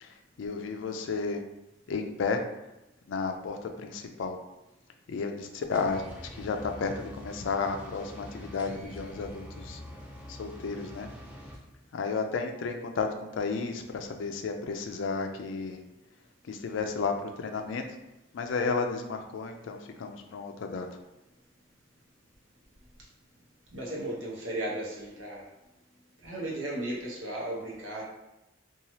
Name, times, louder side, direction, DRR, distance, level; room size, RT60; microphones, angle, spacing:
voice 1, 0.4-1.4 1.9-2.4 3.1-4.4 5.1-6.0 6.3-9.8 10.3-11.1 11.9-13.1 13.3-15.8 16.5-17.8 18.3-20.9, left 4 dB, 70° left, 5 dB, 0.4 m, -32 dB
sound 1, 5.7-11.6, equal, 10° right, 0.4 m, -45 dB
voice 2, 23.7-25.5 26.2-28.0, right 1 dB, 85° right, -3 dB, 0.8 m, -35 dB
2.9 x 2.3 x 2.7 m, 0.96 s
head